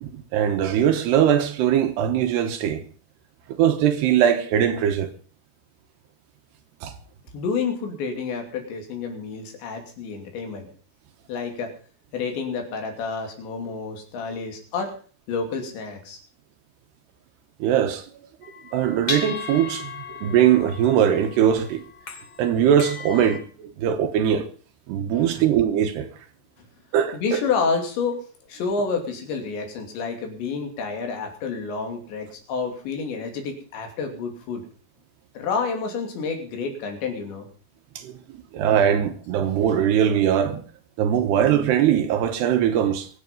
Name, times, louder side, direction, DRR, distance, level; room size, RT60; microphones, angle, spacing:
voice 1, 0.0-2.8 3.5-5.1 6.8-6.9 17.6-18.0 18.7-19.9 20.2-21.8 22.4-24.5 24.9-26.1 26.9-27.4 38.0-38.2 38.5-40.6 41.0-43.1, right 9 dB, 75° right, 3.0 m, -21 dB
voice 2, 7.3-10.7 11.3-11.7 12.1-15.0 15.3-16.2 25.1-25.4 27.1-28.2 28.5-34.7 35.3-37.5, left 5 dB, 70° left, 5.0 m, -29 dB
sound 1, 18.4-23.4, left 5 dB, 45° left, 1.7 m, -36 dB
23.5 x 8.2 x 5.4 m
omnidirectional pair, 5.3 m